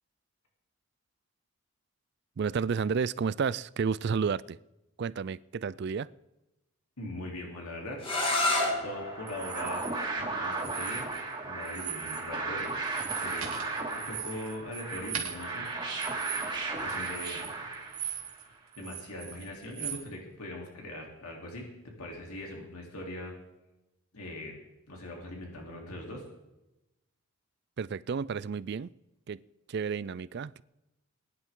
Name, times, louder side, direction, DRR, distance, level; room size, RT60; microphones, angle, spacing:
voice 1, 2.4-4.6 5.0-6.1 27.8-28.9 29.3-29.4 29.7-30.6, right 5 dB, 50° right, 19 dB, 0.3 m, -31 dB
voice 2, 7.0-8.0 8.8-9.8 10.2-11.1 11.4-12.7 13.0-13.6 13.9-15.7 16.8-17.5 18.8-23.3 24.1-24.5 24.9-26.2, left 1 dB, 90° left, -1 dB, 3.3 m, -41 dB
sound 1, 8.0-13.7, left 2 dB, 25° left, 2.0 m, -34 dB
sound 2, 9.0-18.4, right 3 dB, 20° right, 2.2 m, -35 dB
sound 3, 9.3-9.9 10.5-11.3 11.6-12.3 12.6-18.4 18.7-20.0, right 9 dB, 85° right, 2.4 m, -40 dB
20.5 x 11.0 x 3.8 m, 0.95 s
head